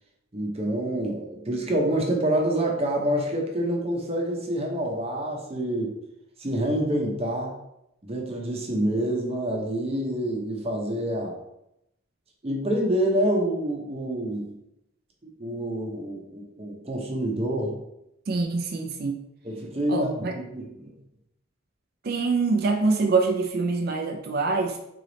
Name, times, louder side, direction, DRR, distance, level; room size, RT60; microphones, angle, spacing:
voice 1, 0.3-5.9 6.4-7.5 8.0-11.3 12.4-14.5 15.2-17.8 19.4-20.9, right 1 dB, 30° right, 0 dB, 0.8 m, -27 dB
voice 2, 18.3-19.2 19.9-20.3 22.0-24.8, right 3 dB, 50° right, 3 dB, 0.4 m, -25 dB
3.8 x 3.4 x 3.9 m, 0.83 s
head